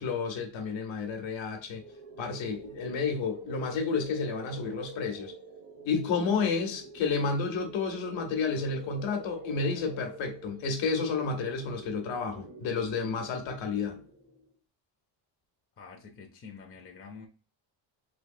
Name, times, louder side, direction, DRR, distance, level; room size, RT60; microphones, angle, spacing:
voice 1, 0.0-1.8 2.2-5.3 5.8-14.0, left 5 dB, 80° left, 1.0 m, -31 dB
sound 1, 1.8-14.6, right 3 dB, 45° right, 0.9 m, -47 dB
voice 2, 15.8-17.3, left 5 dB, 30° left, 0.5 m, -47 dB
3.3 x 3.1 x 2.6 m
cardioid pair, 140°, 45 cm